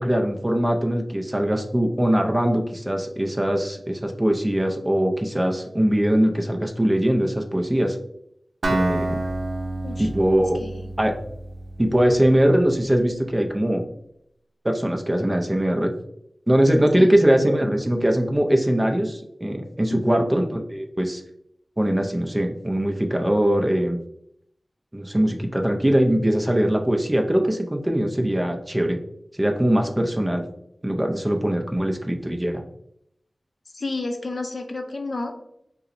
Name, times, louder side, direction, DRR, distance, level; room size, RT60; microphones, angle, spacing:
voice 1, 0.0-8.0 8.7-9.2 10.0-10.6 11.0-11.2 11.8-13.8 14.6-15.9 16.5-21.2 21.8-24.0 24.9-29.0 29.4-30.4 30.8-32.6, equal, 15° right, 3 dB, 0.5 m, -21 dB
Acoustic guitar, 8.6-12.5, right 2 dB, 80° right, 0.6 m, -29 dB
voice 2, 10.6-11.0 16.9-17.2 19.9-20.3 33.7-35.3, left 2 dB, 60° left, 5 dB, 0.5 m, -31 dB
5.4 x 2.0 x 2.5 m, 0.74 s
wide cardioid pair, 85°, 0 cm